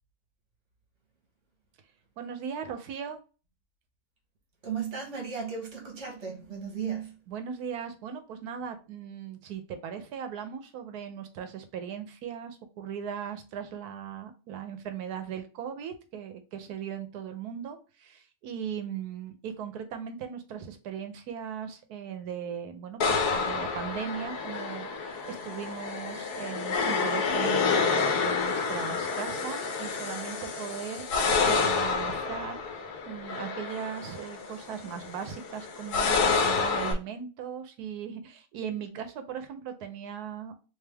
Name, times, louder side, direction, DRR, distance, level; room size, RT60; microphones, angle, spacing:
voice 1, 2.2-3.2 7.3-32.6 33.1-40.6, right 8 dB, 85° right, 1.2 m, -38 dB
voice 2, 4.6-7.2, right 6 dB, 55° right, 1.5 m, -35 dB
sound 1, 23.0-36.9, left 4 dB, 90° left, 1.3 m, -29 dB
3.3 x 3.2 x 3.3 m
omnidirectional pair, 1.6 m